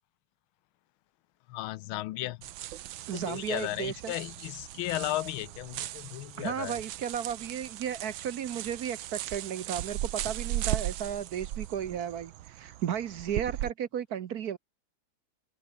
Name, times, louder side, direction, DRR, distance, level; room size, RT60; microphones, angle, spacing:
voice 1, 1.5-2.4 3.1-6.8, left 17 dB, 90° left, 1.5 m, -35 dB
sound 1, 2.4-13.7, right 14 dB, 75° right, 1.6 m, -38 dB
voice 2, 3.1-4.1 6.4-14.6, right 9 dB, 60° right, 1.2 m, -34 dB
open air
omnidirectional pair, 2.2 m